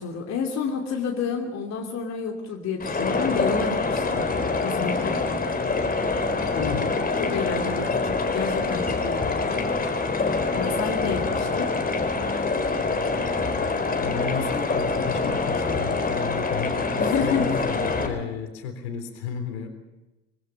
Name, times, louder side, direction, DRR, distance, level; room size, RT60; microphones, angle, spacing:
voice 1, 0.0-4.2 4.6-5.2 7.2-9.6 10.5-11.7 17.0-17.6, left 5 dB, 45° left, 2 dB, 2.9 m, -29 dB
sound 1, 2.8-18.1, left 3 dB, 25° left, 4.1 m, -25 dB
voice 2, 6.6-6.9 14.0-19.7, left 6 dB, 70° left, 7 dB, 3.7 m, -33 dB
24.5 x 22.5 x 5.9 m, 1.0 s
figure-of-eight pair, 55°, 35 cm